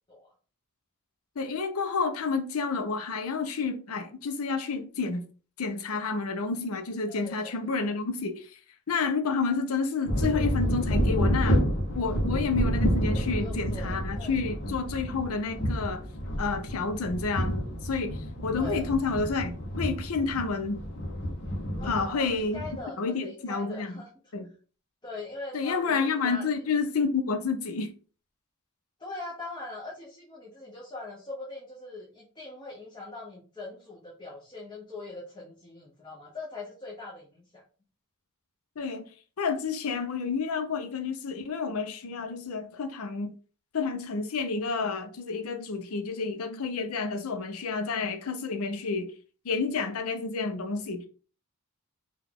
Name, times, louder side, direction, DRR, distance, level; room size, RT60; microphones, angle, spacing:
voice 1, 1.4-5.2 5.6-8.5 8.9-11.6 11.9-16.0 16.4-20.8 21.8-22.6 23.0-23.9 24.3-24.5 25.5-27.9 38.8-39.0 39.4-43.3 43.7-49.1 49.4-51.1, left 4 dB, 75° left, 0.5 m, -30 dB
voice 2, 7.1-7.7 11.9-12.1 13.1-14.4 18.6-18.9 21.8-24.1 25.0-26.5 29.0-37.6, left 2 dB, 20° left, 0.7 m, -42 dB
sound 1, 10.1-22.8, equal, 55° left, 0.8 m, -29 dB
3.7 x 2.3 x 3.5 m
head